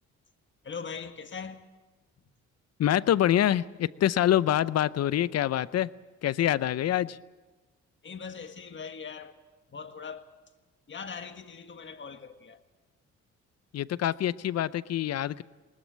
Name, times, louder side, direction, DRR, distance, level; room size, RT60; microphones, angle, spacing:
voice 1, 0.6-1.6 2.2-2.3 8.0-9.3 9.7-10.3 10.9-12.6, left 6 dB, 40° left, 1.7 m, -41 dB
voice 2, 2.8-5.9 6.2-7.2 13.7-15.4, left 11 dB, 55° left, 0.7 m, -25 dB
20.0 x 19.5 x 7.5 m
cardioid pair, 90°, 30 cm